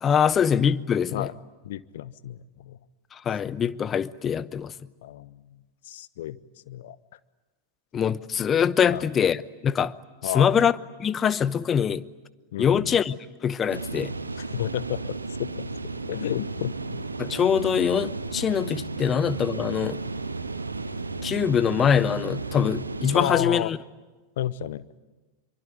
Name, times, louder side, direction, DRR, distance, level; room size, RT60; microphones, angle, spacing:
voice 1, 0.0-1.3 3.1-4.7 7.9-9.9 10.2-10.7 11.0-12.0 12.6-14.1 17.2-20.0 21.2-23.8, left 8 dB, 25° left, 0.8 m, -23 dB
voice 2, 1.6-2.8 5.0-6.4 6.7-7.0 8.9-9.1 10.2-10.6 12.5-13.0 14.4-15.7 16.0-17.0 23.1-23.7 24.4-24.8, left 12 dB, 55° left, 0.9 m, -32 dB
sound 1, 13.7-23.4, right 3 dB, 80° right, 1.3 m, -33 dB
25.0 x 24.0 x 9.6 m
figure-of-eight pair, 90°, 0 cm